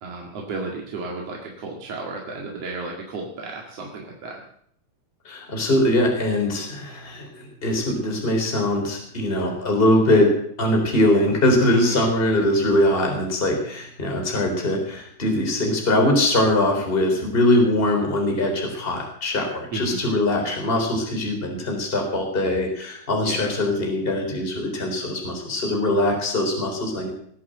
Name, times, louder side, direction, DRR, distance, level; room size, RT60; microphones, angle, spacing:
voice 1, 0.0-4.4 11.7-12.0 19.7-20.0 23.2-23.5, right 3 dB, 45° right, -1 dB, 2.6 m, -33 dB
voice 2, 5.3-10.3 10.6-27.1, left 1 dB, 15° left, 2 dB, 3.6 m, -22 dB
20.0 x 8.6 x 7.9 m, 0.66 s
omnidirectional pair, 4.6 m